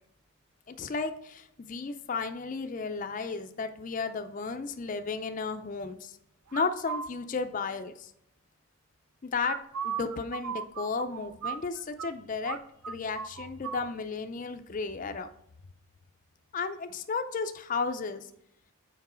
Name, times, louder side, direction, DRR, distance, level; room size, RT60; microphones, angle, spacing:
voice 1, 0.7-6.2 6.5-8.1 9.2-9.6 9.8-12.6 12.9-15.3 16.5-18.3, left 4 dB, 35° left, 7 dB, 0.4 m, -33 dB
sound 1, 6.5-7.1 9.4-12.1 12.4-12.6 12.8-13.8, right 7 dB, 80° right, 0.5 m, -36 dB
6.0 x 4.6 x 4.3 m, 0.75 s
head